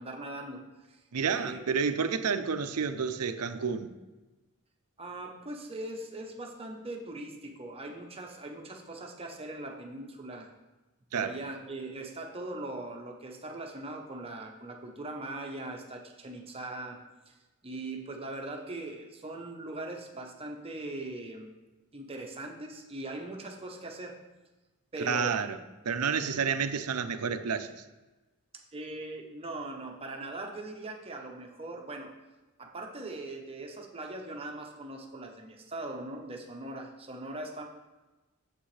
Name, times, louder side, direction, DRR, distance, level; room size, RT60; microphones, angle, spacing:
voice 1, 0.0-1.0 1.3-1.8 5.0-10.5 11.1-17.0 17.3-17.4 17.6-21.5 21.9-24.2 24.9-25.4 26.2-26.5 28.7-32.1 32.6-37.6, right 2 dB, 25° right, 2 dB, 0.9 m, -40 dB
voice 2, 1.1-3.9 11.1-11.3 25.0-25.6 25.8-27.7, right 6 dB, 85° right, 10 dB, 0.6 m, -30 dB
8.6 x 7.6 x 3.3 m, 1.1 s
head